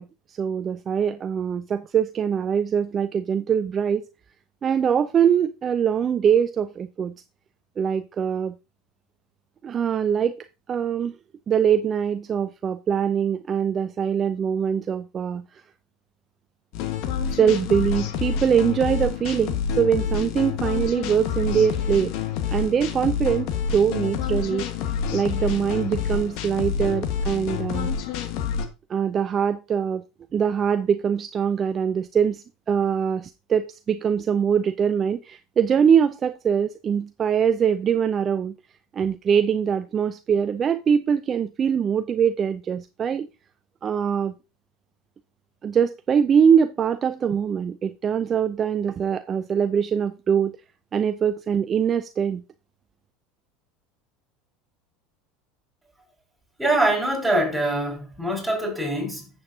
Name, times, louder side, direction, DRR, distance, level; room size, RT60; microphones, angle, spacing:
voice 1, 0.0-4.0 4.6-7.1 7.8-8.5 9.6-11.1 11.5-15.6 17.4-22.1 22.5-24.7 25.1-27.9 28.9-30.0 30.3-38.5 38.9-43.3 43.8-44.3 45.6-50.5 50.9-52.4, right 7 dB, 35° right, 0.5 m, -23 dB
sound 1, 16.7-28.6, left 7 dB, 65° left, 1.4 m, -28 dB
voice 2, 56.6-59.3, right 1 dB, ahead, 5.7 m, -24 dB
11.0 x 7.9 x 2.7 m
supercardioid pair, 100°, 0 cm